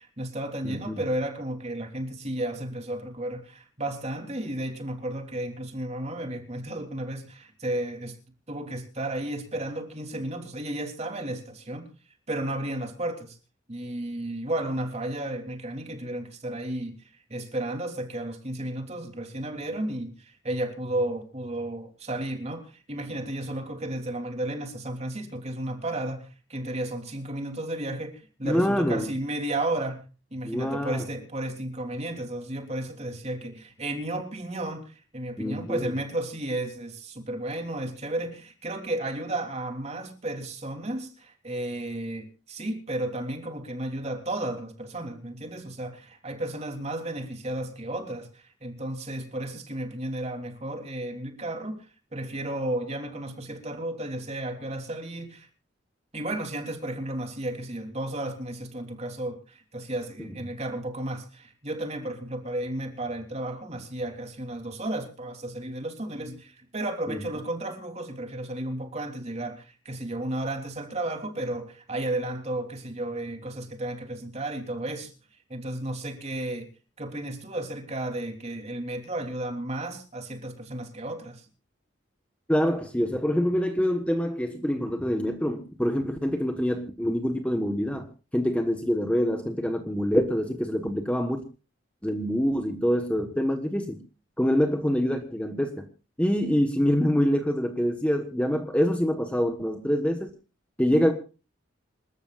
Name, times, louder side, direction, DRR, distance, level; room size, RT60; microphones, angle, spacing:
voice 1, 0.0-8.1 8.5-11.9 12.3-13.4 13.7-30.0 30.3-51.8 52.1-55.5 56.1-75.1 75.5-76.7 77.0-81.4, right 1 dB, 35° right, 4 dB, 3.3 m, -33 dB
voice 2, 0.6-1.0 28.4-29.1 30.4-31.1 35.4-35.9 60.2-60.3 67.1-67.2 82.5-88.1 88.3-91.4 92.0-94.0 94.4-95.9 96.2-100.3 100.8-101.1, equal, 5° left, 5 dB, 1.3 m, -25 dB
27.5 x 13.5 x 2.5 m, 0.34 s
head